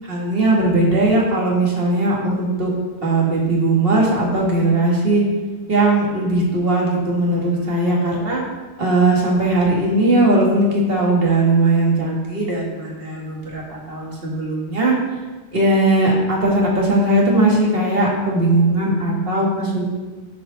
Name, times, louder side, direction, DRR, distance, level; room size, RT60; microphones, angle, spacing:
voice 1, 0.1-2.7 3.0-5.2 5.7-8.4 8.8-14.9 15.5-19.8, right 2 dB, 45° right, -3 dB, 1.9 m, -18 dB
11.0 x 4.6 x 4.0 m, 1.2 s
omnidirectional pair, 1.4 m